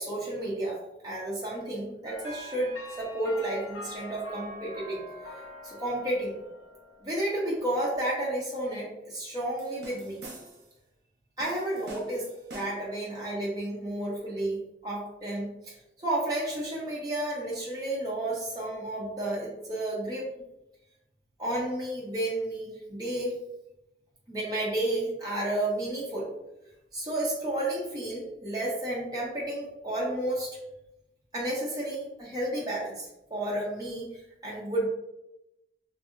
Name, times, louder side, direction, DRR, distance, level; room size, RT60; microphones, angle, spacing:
voice 1, 0.0-5.0 5.6-6.4 7.0-10.2 11.4-20.3 21.4-23.4 24.3-26.3 26.9-30.6 31.3-34.9, right 1 dB, 20° right, -5 dB, 0.7 m, -32 dB
sound 1, 2.1-7.6, left 1 dB, 85° left, 0.7 m, -44 dB
sound 2, 9.6-10.8 11.4-13.0, right 1 dB, 80° right, 0.8 m, -46 dB
2.7 x 2.6 x 2.5 m, 0.90 s
head